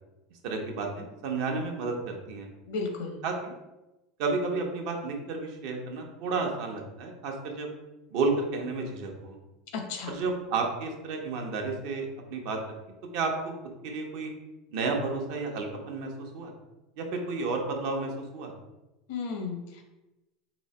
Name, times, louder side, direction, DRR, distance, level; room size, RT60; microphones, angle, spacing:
voice 1, 0.4-2.5 3.2-3.5 4.2-7.7 8.1-9.4 10.1-12.6 13.1-13.3 13.8-14.3 14.7-16.5 17.0-18.5, right 3 dB, 70° right, 2 dB, 0.8 m, -31 dB
voice 2, 2.7-3.2 9.7-10.2 19.1-19.8, left 4 dB, 80° left, 3 dB, 0.8 m, -34 dB
3.1 x 2.8 x 4.2 m, 1.0 s
supercardioid pair, 115°, 0 cm